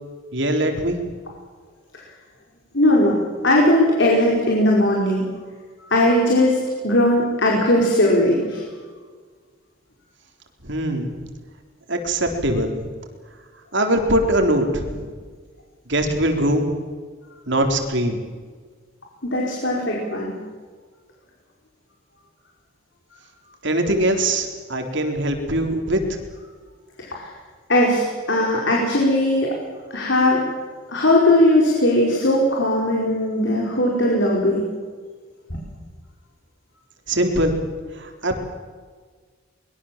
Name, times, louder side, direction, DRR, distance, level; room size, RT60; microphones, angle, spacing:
voice 1, 0.3-1.0 10.6-11.1 11.9-12.9 13.7-15.1 15.9-16.7 17.5-18.2 23.6-26.0 37.1-37.7 37.9-38.4, right 1 dB, 60° right, 4 dB, 3.9 m, -22 dB
voice 2, 2.7-5.3 5.8-8.6 19.2-20.4 27.0-27.3 27.7-29.6 29.9-30.4 30.9-34.7 35.5-35.6, left 1 dB, 60° left, -2 dB, 5.1 m, -19 dB
23.5 x 22.5 x 7.5 m, 1.5 s
head